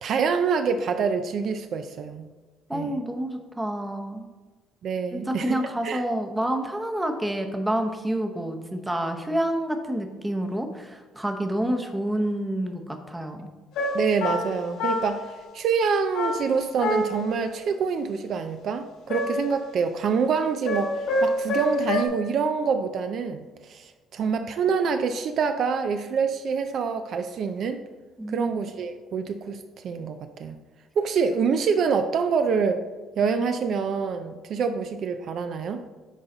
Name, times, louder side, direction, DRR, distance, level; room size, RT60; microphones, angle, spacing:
voice 1, 0.0-2.2 2.7-3.0 4.8-5.6 5.8-6.0 13.9-15.3 15.5-27.8 28.3-30.6 31.0-32.8 33.2-35.8, right 5 dB, 55° right, 8 dB, 0.4 m, -26 dB
voice 2, 2.7-4.3 5.1-13.4 28.2-28.5, right 1 dB, 10° right, 5 dB, 0.8 m, -28 dB
sound 1, 13.7-15.3 16.1-17.4 19.1-19.6 20.7-22.1, left 1 dB, 80° left, 2.3 m, -27 dB
10.0 x 4.0 x 3.9 m, 1.3 s
cardioid pair, 115°, 0 cm